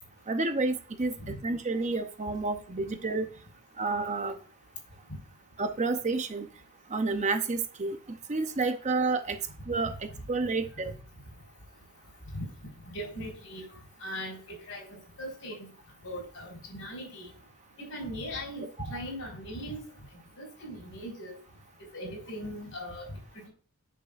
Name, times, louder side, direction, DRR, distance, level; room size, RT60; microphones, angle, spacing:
voice 1, 0.3-3.3 3.8-4.4 5.6-6.5 6.9-9.4 9.7-10.9, right 3 dB, 30° right, 7 dB, 0.7 m, -30 dB
voice 2, 12.9-13.6 14.0-14.4 14.7-15.7 16.0-17.3 17.8-19.8 20.4-21.3 21.8-23.1 23.3-23.5, equal, 70° left, 0 dB, 4.0 m, -39 dB
8.6 x 6.6 x 2.5 m, 0.39 s
head